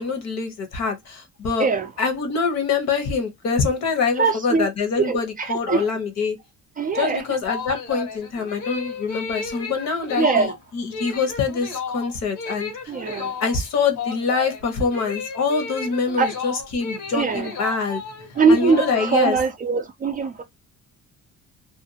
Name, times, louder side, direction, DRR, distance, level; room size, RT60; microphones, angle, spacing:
voice 1, 0.0-1.7 2.0-6.4 6.9-12.9 13.4-18.0 18.5-19.4, left 5 dB, 60° left, 0.9 m, -25 dB
voice 2, 4.2-4.7 5.0-5.9 6.8-7.2 10.2-10.5 12.9-13.3 16.2-16.3 17.1-17.5 18.4-20.4, right 4 dB, 30° right, 0.4 m, -21 dB
sound 1, 7.2-19.3, left 5 dB, 80° left, 1.2 m, -33 dB
2.5 x 2.3 x 2.6 m
cardioid pair, 155°, 31 cm